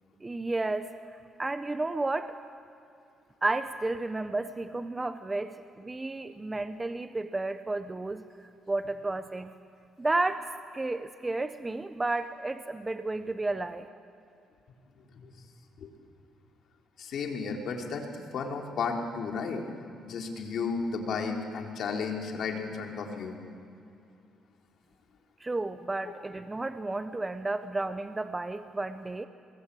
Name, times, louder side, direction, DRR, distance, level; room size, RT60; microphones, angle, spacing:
voice 1, 0.2-0.8 1.4-2.3 3.4-8.2 8.7-9.5 10.0-10.5 10.7-13.8 25.4-29.3, right 2 dB, 20° right, 10 dB, 0.9 m, -32 dB
voice 2, 17.0-18.1 18.3-19.7 20.0-23.3 26.0-26.1, left 5 dB, 70° left, 1 dB, 3.8 m, -33 dB
25.0 x 21.5 x 8.5 m, 2.4 s
cardioid pair, 90°, 0 cm